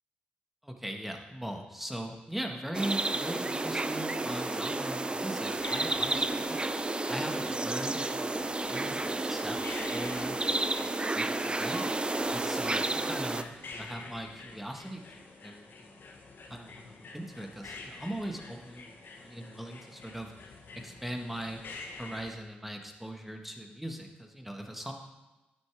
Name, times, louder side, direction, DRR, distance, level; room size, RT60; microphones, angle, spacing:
voice 1, 0.6-6.6 7.1-10.4 10.8-11.9 12.3-16.0 16.5-21.6 22.0-24.9, right 1 dB, 5° right, 3 dB, 1.6 m, -40 dB
sound 1, 2.7-13.4, right 2 dB, 25° right, 0.6 m, -31 dB
sound 2, 5.5-22.3, left 3 dB, 60° left, 1.3 m, -48 dB
10.5 x 8.0 x 3.5 m, 1.1 s
hypercardioid pair, 40°, 4 cm